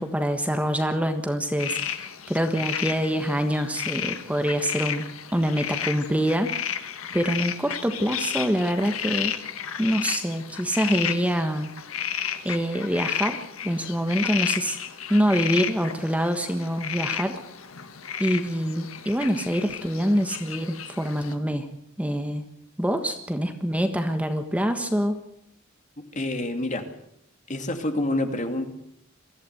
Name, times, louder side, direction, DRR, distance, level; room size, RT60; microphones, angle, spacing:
voice 1, 0.0-9.3 9.8-11.7 12.4-13.4 13.6-14.8 15.1-17.4 18.2-21.7 22.0-22.5 22.8-25.2, equal, 5° right, 6 dB, 1.4 m, -25 dB
sound 1, 1.6-21.3, left 9 dB, 90° left, 1.5 m, -33 dB
voice 2, 26.1-26.9 27.5-28.7, left 1 dB, 35° left, 6 dB, 2.4 m, -27 dB
23.0 x 15.0 x 8.1 m, 0.74 s
head